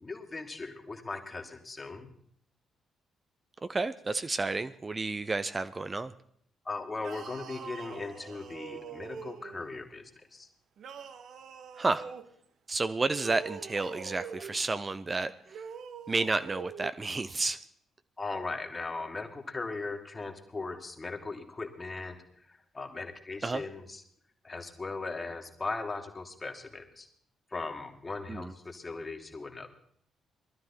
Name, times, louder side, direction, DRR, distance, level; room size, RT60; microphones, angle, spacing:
voice 1, 0.0-2.1 6.7-10.5 18.2-22.2 22.5-24.0 24.4-27.1 27.5-29.7, left 3 dB, 30° left, 5 dB, 2.2 m, -38 dB
voice 2, 3.7-6.1 11.8-12.0 12.7-15.6 16.1-17.6 23.4-23.6 28.3-28.5, right 3 dB, 30° right, 12 dB, 0.6 m, -31 dB
sound 1, 7.0-9.7 10.8-12.3 13.1-14.6 15.5-16.9, right 7 dB, 60° right, 1.0 m, -44 dB
19.5 x 12.5 x 4.3 m, 0.65 s
figure-of-eight pair, 40°, 0 cm